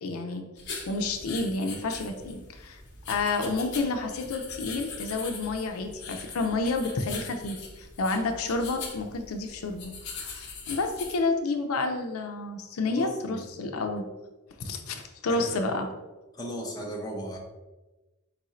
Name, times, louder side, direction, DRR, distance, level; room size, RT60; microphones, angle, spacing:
voice 1, 0.0-0.5 0.9-2.8 3.1-14.0 14.6-15.9, left 3 dB, 85° left, 5 dB, 0.5 m, -30 dB
sound 1, 0.6-11.1, left 4 dB, 55° left, 0.9 m, -41 dB
voice 2, 12.9-13.5 15.3-15.4 16.3-17.4, equal, 20° left, -1 dB, 0.7 m, -36 dB
4.7 x 2.5 x 4.2 m, 1.1 s
head